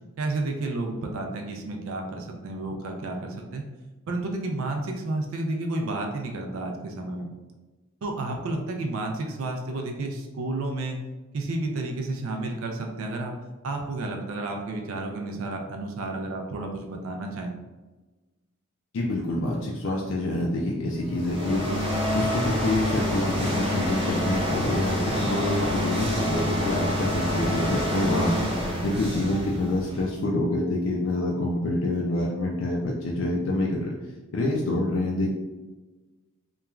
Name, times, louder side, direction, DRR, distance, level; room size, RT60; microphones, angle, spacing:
voice 1, 0.2-3.6 4.1-7.3 8.0-11.0 11.3-13.4 13.6-17.5, right 2 dB, 75° right, 3 dB, 0.4 m, -31 dB
voice 2, 18.9-21.6 22.1-28.3 28.8-33.9 34.3-35.3, left 1 dB, 65° left, -2 dB, 0.4 m, -27 dB
sound 1, 21.0-30.2, equal, 25° right, 0.6 m, -27 dB
3.0 x 2.3 x 2.3 m, 1.2 s
head